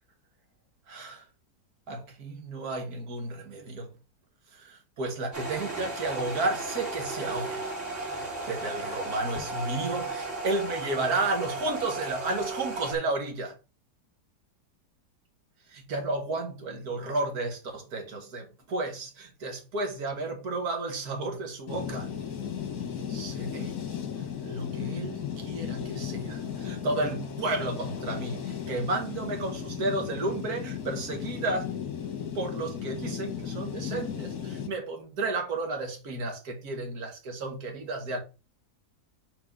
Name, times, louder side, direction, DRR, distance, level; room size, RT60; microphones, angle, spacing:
voice 1, 0.9-1.2 1.9-3.9 4.5-7.7 8.0-13.6 15.7-22.1 23.1-23.8 24.4-31.7 32.4-38.2, right 2 dB, 65° right, 1.8 m, -32 dB
sound 1, 5.3-13.0, right 2 dB, 45° right, 2.5 m, -35 dB
sound 2, 21.7-34.7, left 8 dB, 65° left, 1.8 m, -35 dB
4.6 x 4.3 x 5.2 m
omnidirectional pair, 1.7 m